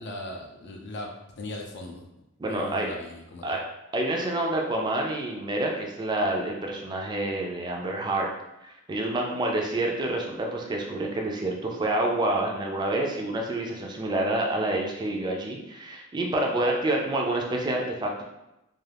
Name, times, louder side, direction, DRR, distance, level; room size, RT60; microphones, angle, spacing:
voice 1, 0.0-2.0 2.5-3.6, left 2 dB, 50° left, 1 dB, 0.4 m, -39 dB
voice 2, 2.4-2.9 3.4-3.6 3.9-8.3 8.9-18.3, right 1 dB, 20° right, 0 dB, 0.3 m, -28 dB
2.4 x 2.4 x 3.3 m, 0.92 s
head